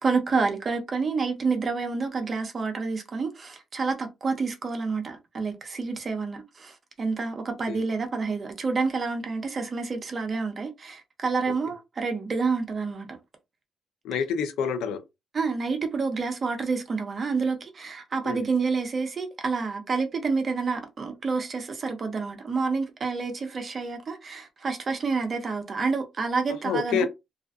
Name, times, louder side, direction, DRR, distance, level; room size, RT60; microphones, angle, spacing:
voice 1, 0.0-13.1 15.3-27.1, right 4 dB, 40° right, 0.7 m, -28 dB
voice 2, 14.0-15.0 18.2-18.4 26.6-27.1, left 6 dB, 85° left, 0.5 m, -27 dB
2.4 x 2.4 x 2.3 m
cardioid pair, 90°, 0 cm